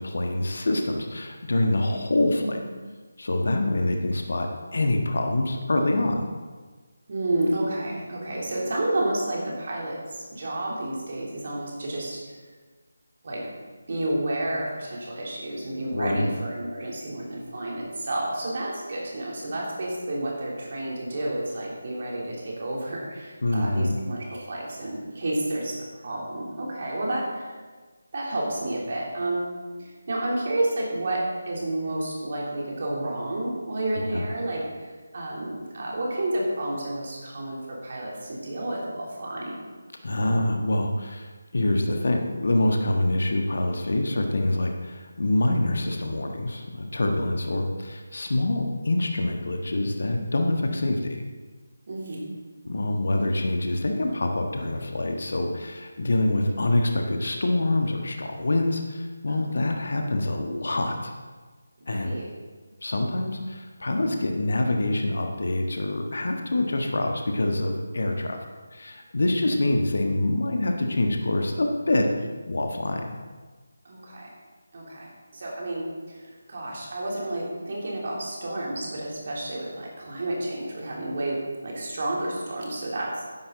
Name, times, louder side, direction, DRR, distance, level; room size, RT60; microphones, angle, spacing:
voice 1, 0.0-2.6 3.2-6.2 15.9-16.3 23.4-24.0 34.1-34.2 40.0-51.2 52.6-61.1 61.9-62.2 62.8-68.4 68.7-72.1 72.5-73.0, left 1 dB, 55° left, 3 dB, 1.4 m, -25 dB
voice 2, 2.2-2.6 7.1-12.2 13.2-13.4 13.9-27.6 28.1-29.5 29.8-34.6 35.1-39.6 51.9-52.2 59.3-59.6 61.8-62.3 69.6-69.7 73.8-74.3 74.7-83.2, right 1 dB, 40° right, -3 dB, 3.3 m, -30 dB
12.5 x 10.5 x 4.0 m, 1.4 s
figure-of-eight pair, 155°, 0 cm